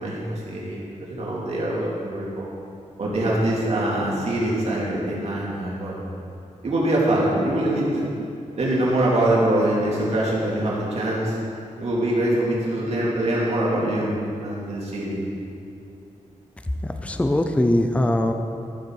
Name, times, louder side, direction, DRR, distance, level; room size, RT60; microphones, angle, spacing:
voice 1, 0.0-2.6 3.0-5.9 6.6-8.0 8.6-11.4 11.8-14.1 14.4-15.2, right 1 dB, 55° right, -5 dB, 2.6 m, -23 dB
voice 2, 16.8-18.3, left 1 dB, 10° left, 6 dB, 0.5 m, -21 dB
14.5 x 6.7 x 4.7 m, 2.6 s
wide cardioid pair, 150°, 13 cm